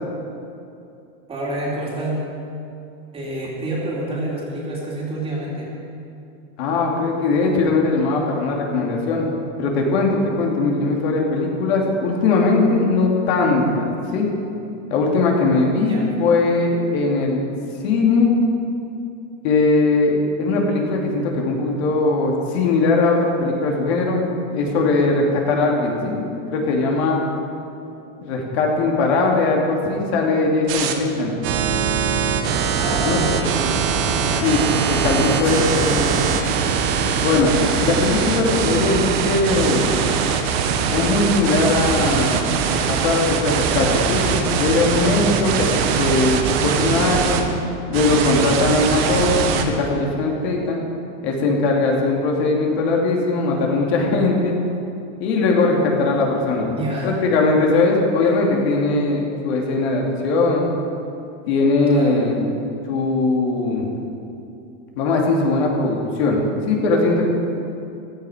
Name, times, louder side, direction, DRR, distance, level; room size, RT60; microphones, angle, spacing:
voice 1, 1.3-2.2 3.1-5.7 15.8-16.1 32.7-33.8 34.2-34.5 35.4-36.3 56.7-57.2 61.9-62.2, right 1 dB, 15° right, -4 dB, 2.9 m, -28 dB
voice 2, 6.6-9.3 9.6-13.9 14.1-14.3 14.9-17.4 17.8-18.3 19.4-24.2 24.5-26.2 26.5-27.2 28.2-31.4 33.1-33.2 34.4-34.6 34.9-36.1 37.2-39.9 40.9-42.3 42.9-47.4 47.9-50.8 51.2-54.5 55.2-56.7 57.0-60.7 61.5-62.5 62.8-64.0 65.0-67.3, left 3 dB, 55° left, -1 dB, 2.7 m, -20 dB
sound 1, 30.7-30.9 31.4-47.4 47.9-49.6, right 6 dB, 55° right, 1.5 m, -21 dB
15.5 x 13.0 x 5.1 m, 2.8 s
supercardioid pair, 160°, 37 cm